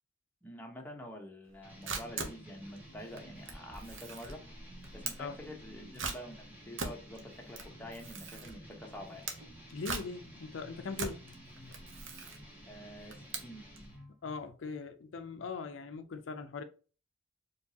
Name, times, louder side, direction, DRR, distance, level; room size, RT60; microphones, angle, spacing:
voice 1, 0.4-4.4 4.9-9.3 12.7-13.6, equal, 10° left, 0.9 m, -47 dB
Camera, 1.5-13.9, right 4 dB, 85° right, 0.8 m, -42 dB
sound 1, 1.6-14.2, equal, 10° right, 1.4 m, -53 dB
voice 2, 9.7-11.8 14.2-16.6, left 4 dB, 80° left, 0.5 m, -41 dB
4.5 x 3.0 x 2.8 m
head